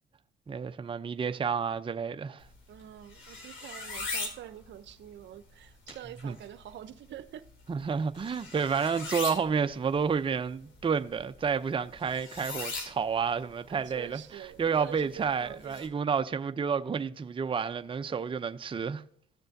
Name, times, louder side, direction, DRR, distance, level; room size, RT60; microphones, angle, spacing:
voice 1, 0.5-2.4 6.2-6.3 7.7-14.2 14.6-19.0, right 6 dB, 25° right, 0.5 m, -30 dB
sound 1, 2.4-15.9, left 3 dB, 75° left, 2.5 m, -43 dB
voice 2, 2.7-7.5 13.7-16.1, right 11 dB, 65° right, 0.6 m, -46 dB
15.0 x 6.7 x 2.6 m
supercardioid pair, 65°, 20 cm